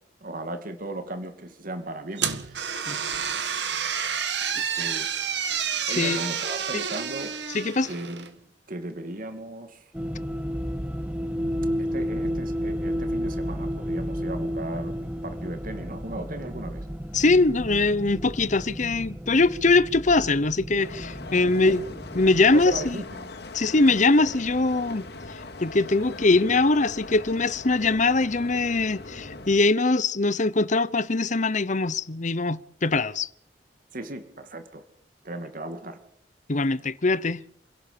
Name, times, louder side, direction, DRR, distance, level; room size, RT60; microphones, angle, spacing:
voice 1, 0.2-2.7 4.7-5.1 5.9-7.3 7.8-8.2 8.7-9.9 11.8-16.9 21.4-21.8 22.5-23.3 23.8-24.1 33.9-34.8 35.2-36.0, right 2 dB, 50° right, 2.4 m, -37 dB
sound 1, 2.2-8.3, right 7 dB, 80° right, 2.1 m, -29 dB
voice 2, 5.9-6.2 7.5-7.9 17.1-21.8 22.1-23.0 23.5-33.3 36.5-37.4, left 3 dB, 45° left, 0.9 m, -22 dB
sound 2, 9.9-22.9, equal, 5° right, 1.4 m, -32 dB
sound 3, 20.8-29.6, left 2 dB, 65° left, 2.4 m, -40 dB
28.0 x 17.0 x 6.9 m
head